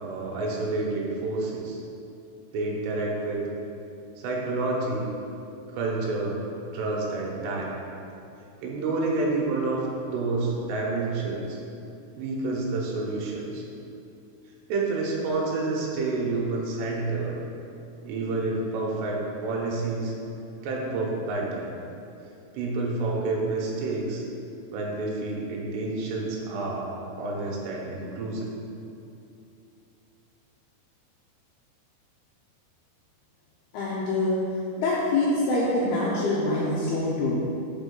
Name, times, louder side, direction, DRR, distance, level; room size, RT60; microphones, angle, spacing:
voice 1, 0.0-1.8 2.5-3.5 4.2-5.1 5.7-6.4 6.7-7.7 8.6-11.6 12.2-13.6 14.7-17.4 18.0-20.1 20.6-21.7 22.5-24.2 24.7-26.9 27.2-28.5, right 3 dB, 70° right, -3 dB, 2.9 m, -29 dB
voice 2, 33.7-34.4 34.8-37.4, left 2 dB, 85° left, -6 dB, 2.2 m, -25 dB
6.0 x 5.3 x 5.4 m, 2.6 s
omnidirectional pair, 5.6 m